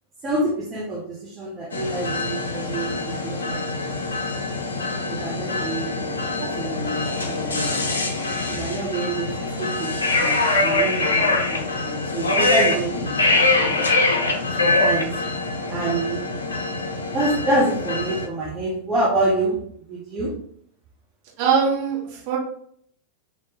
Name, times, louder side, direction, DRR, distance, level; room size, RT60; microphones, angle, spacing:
voice 1, 0.2-3.9 5.0-6.1 6.6-7.8 8.5-9.3 9.6-14.0 14.6-15.2 15.7-16.3 17.1-19.6 19.9-20.3, right 2 dB, 25° right, -4 dB, 0.8 m, -27 dB
sound 1, 1.7-18.3, left 2 dB, 75° left, 0.6 m, -24 dB
voice 2, 21.4-22.4, right 6 dB, 45° right, -4 dB, 1.5 m, -22 dB
3.5 x 2.9 x 2.9 m, 0.66 s
figure-of-eight pair, 90°, 0 cm